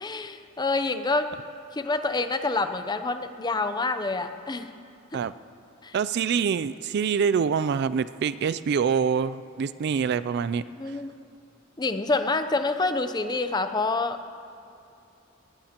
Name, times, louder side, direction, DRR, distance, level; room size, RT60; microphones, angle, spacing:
voice 1, 0.0-1.3 1.7-4.7 5.8-5.9 10.8-11.1 11.8-14.4, left 3 dB, 20° left, 9 dB, 0.6 m, -27 dB
voice 2, 5.9-10.6, right 6 dB, 50° right, 15 dB, 0.3 m, -25 dB
20.5 x 19.5 x 2.9 m, 2.5 s
head